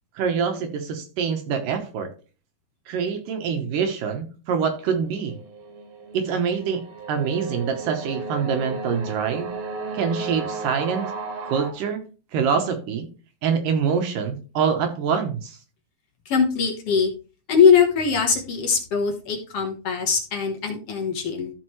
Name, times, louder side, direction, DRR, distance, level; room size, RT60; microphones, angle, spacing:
voice 1, 0.2-2.1 2.9-5.4 6.1-6.8 7.1-9.5 9.9-11.1 11.4-12.0 12.3-13.1 13.4-15.6, right 6 dB, 70° right, 5 dB, 2.5 m, -25 dB
sound 1, 5.0-11.7, right 3 dB, 90° right, 3.5 m, -34 dB
voice 2, 16.2-17.1 17.5-21.5, left 6 dB, 60° left, 2 dB, 1.6 m, -21 dB
13.5 x 5.3 x 3.1 m, 0.35 s
omnidirectional pair, 4.3 m